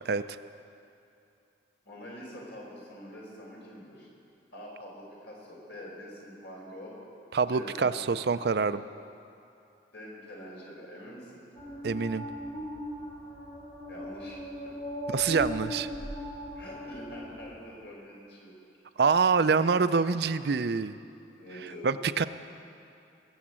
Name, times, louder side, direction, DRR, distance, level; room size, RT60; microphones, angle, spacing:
voice 1, 0.1-0.4 7.3-8.8 11.8-12.3 15.1-15.9 19.0-21.0 21.8-22.2, right 5 dB, 60° right, 13 dB, 0.4 m, -26 dB
voice 2, 1.8-4.1 4.5-6.9 7.5-7.9 8.4-8.6 9.9-11.5 13.9-14.8 16.5-18.5 21.4-21.9, equal, 75° left, -3 dB, 4.8 m, -45 dB
sound 1, 11.6-17.6, equal, 45° left, 3.0 m, -38 dB
21.5 x 7.2 x 8.8 m, 2.6 s
head